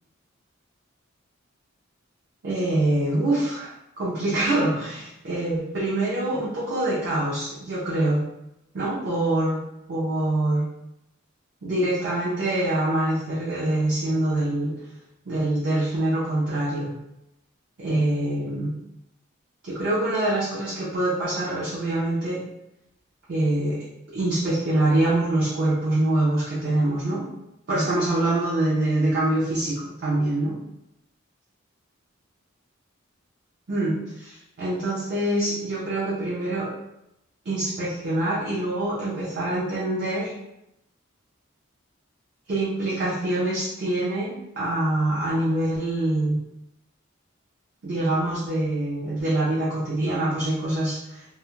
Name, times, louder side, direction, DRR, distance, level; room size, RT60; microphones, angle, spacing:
voice 1, 2.4-8.2 8.7-9.6 9.9-10.6 11.6-14.7 15.3-16.9 17.8-18.7 19.6-22.5 23.3-27.3 27.7-30.6 33.7-36.7 37.4-40.3 42.5-46.4 47.8-51.3, right 1 dB, 55° right, -7 dB, 0.5 m, -25 dB
2.3 x 2.0 x 3.0 m, 0.84 s
head